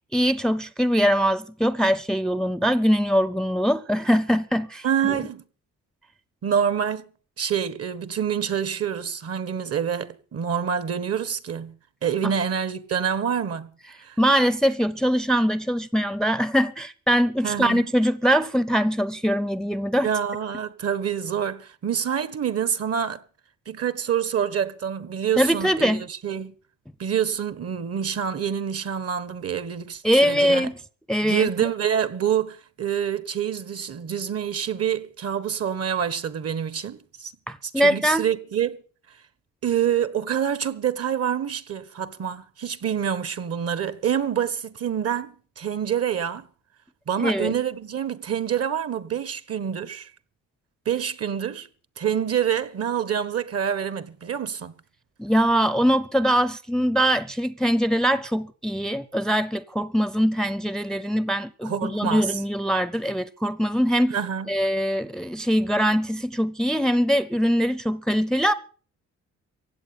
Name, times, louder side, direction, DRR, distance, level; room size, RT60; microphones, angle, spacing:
voice 1, 0.1-4.9 12.2-12.3 14.2-20.1 25.4-26.0 30.0-30.7 31.1-31.5 37.5-38.3 47.2-47.5 55.2-64.2 64.5-68.5, equal, ahead, 0.6 m, -22 dB
voice 2, 4.8-5.4 6.4-7.1 7.4-13.7 14.0-14.2 17.4-17.8 20.0-23.2 23.7-26.5 27.0-30.7 31.2-37.3 37.7-38.8 39.6-46.4 47.1-50.1 50.8-51.7 52.0-54.7 61.6-62.3 64.1-64.5, right 8 dB, 50° right, 1.5 m, -26 dB
16.0 x 8.6 x 8.6 m
cardioid pair, 90°, 30 cm